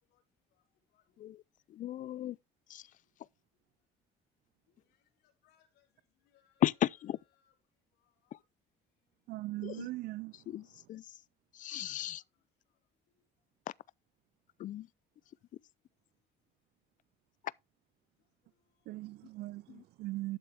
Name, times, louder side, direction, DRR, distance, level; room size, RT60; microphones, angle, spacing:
voice 1, 0.9-1.2 4.7-6.6 7.3-7.6 7.9-8.4 11.9-12.8 18.2-19.1 20.3-20.4, left 10 dB, 80° left, 3.1 m, -75 dB
voice 2, 1.7-2.4 2.7-3.0 6.6-7.2 8.3-8.4 9.6-9.9 10.5-11.2 11.5-12.2 13.7-13.8 14.6-14.9 17.4-17.5 19.7-19.8, left 12 dB, 50° left, 0.4 m, -35 dB
voice 3, 9.3-10.5 18.9-20.4, right 18 dB, 75° right, 0.4 m, -40 dB
11.5 x 6.8 x 3.4 m
cardioid pair, 110°, 17 cm